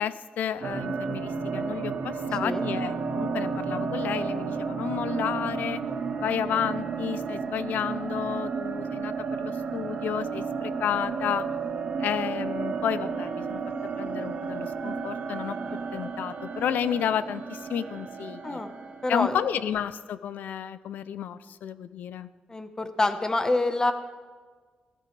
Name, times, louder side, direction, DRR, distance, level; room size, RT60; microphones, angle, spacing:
voice 1, 0.0-5.8 6.2-11.5 12.0-13.6 14.0-15.6 15.9-18.6 19.1-22.3, left 9 dB, 90° left, 15 dB, 0.5 m, -31 dB
sound 1, 0.6-19.5, right 5 dB, 70° right, 1.5 m, -32 dB
voice 2, 19.0-19.3 22.5-23.9, left 2 dB, 25° left, 8 dB, 1.1 m, -26 dB
16.0 x 13.0 x 3.3 m, 1.5 s
cardioid pair, 85°, 3 cm